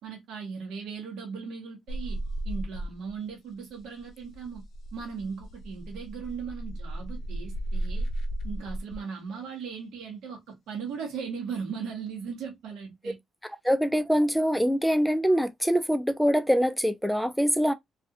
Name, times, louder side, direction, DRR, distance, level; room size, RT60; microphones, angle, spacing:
voice 1, 0.0-2.2 2.4-4.6 4.9-8.1 8.4-13.2, right 6 dB, 80° right, 1.1 m, -38 dB
sound 1, 1.9-3.3 3.6-9.0 10.7-11.2, right 1 dB, 65° left, 0.5 m, -34 dB
voice 2, 13.4-17.7, equal, ahead, 0.4 m, -24 dB
2.5 x 2.3 x 2.6 m
cardioid pair, 90°, 0 cm